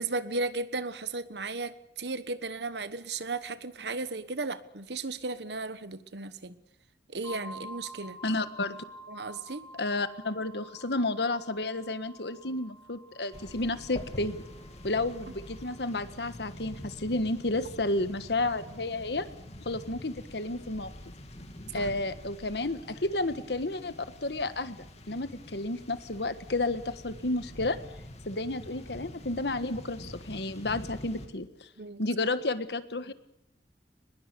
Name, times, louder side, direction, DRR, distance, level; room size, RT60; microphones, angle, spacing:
voice 1, 0.0-6.6 7.1-8.2 9.1-9.6 21.7-21.9 31.8-32.1, right 3 dB, 70° right, 13 dB, 1.3 m, -35 dB
sound 1, 7.2-16.9, equal, 20° left, 3.2 m, -49 dB
voice 2, 8.2-8.8 9.7-14.4 14.8-19.3 19.6-20.9 21.7-23.9 24.2-27.8 28.3-31.7 32.0-33.1, left 2 dB, 70° left, 11 dB, 1.5 m, -31 dB
sound 2, 13.3-31.3, left 1 dB, 40° left, 2.8 m, -46 dB
23.0 x 21.0 x 6.9 m, 0.80 s
head